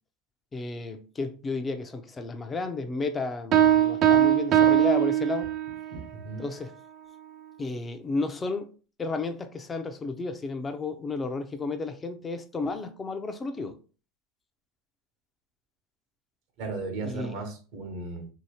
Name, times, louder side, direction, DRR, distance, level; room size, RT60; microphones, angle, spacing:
voice 1, 0.5-5.5 6.4-6.7 7.6-8.7 9.0-13.8 17.0-17.4, left 3 dB, 20° left, 0.5 m, -32 dB
sound 1, 3.5-5.9, right 11 dB, 45° right, 0.4 m, -21 dB
voice 2, 5.9-6.5 16.6-18.3, right 3 dB, 70° right, 0.9 m, -36 dB
3.0 x 2.8 x 2.8 m
hypercardioid pair, 95°, 0 cm